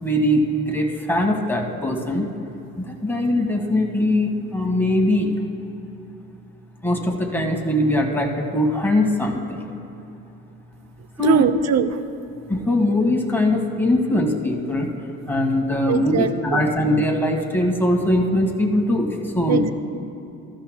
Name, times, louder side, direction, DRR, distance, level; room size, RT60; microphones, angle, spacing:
voice 1, 0.0-2.3 2.8-5.3 6.8-9.6 11.2-11.4 12.5-14.9 15.3-19.1 19.3-19.6, left 1 dB, 5° left, 0 dB, 1.7 m, -21 dB
voice 2, 11.2-11.9 15.8-16.7 19.5-19.7, right 8 dB, 45° right, 11 dB, 0.7 m, -21 dB
15.0 x 12.5 x 2.3 m, 2.9 s
hypercardioid pair, 60°, 38 cm